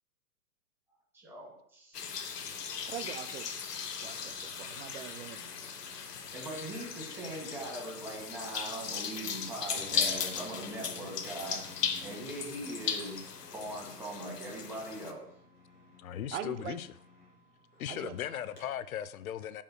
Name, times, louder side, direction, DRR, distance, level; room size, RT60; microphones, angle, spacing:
voice 1, 1.1-2.0 6.3-11.6 12.0-13.2 13.5-15.2, right 1 dB, 5° right, 2.3 m, -41 dB
sound 1, 1.9-15.1, left 7 dB, 80° left, 1.0 m, -37 dB
voice 2, 2.9-3.5 4.0-5.6 16.3-16.8 17.9-18.2, right 9 dB, 50° right, 0.6 m, -42 dB
sound 2, 9.3-18.6, left 2 dB, 20° left, 2.4 m, -52 dB
voice 3, 16.0-16.9 17.8-19.6, left 10 dB, 65° left, 0.6 m, -37 dB
13.5 x 5.5 x 2.2 m
hypercardioid pair, 135°, 47 cm